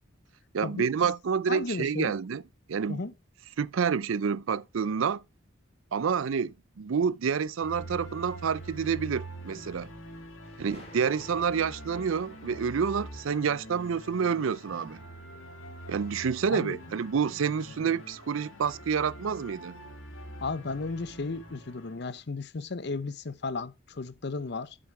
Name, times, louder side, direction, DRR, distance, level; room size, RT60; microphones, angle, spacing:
voice 1, 0.5-2.4 2.7-3.0 3.6-5.2 5.9-9.9 10.6-15.0 15.9-19.8, right 6 dB, 80° right, 0.5 m, -28 dB
voice 2, 1.5-2.1 2.9-3.1 16.5-16.8 20.4-24.8, left 3 dB, 55° left, 0.7 m, -34 dB
sound 1, 6.7-7.4 10.4-18.2 18.5-18.7, left 1 dB, 35° left, 4.3 m, -55 dB
sound 2, 7.6-22.1, right 1 dB, 75° left, 2.5 m, -45 dB
7.9 x 7.7 x 4.7 m
head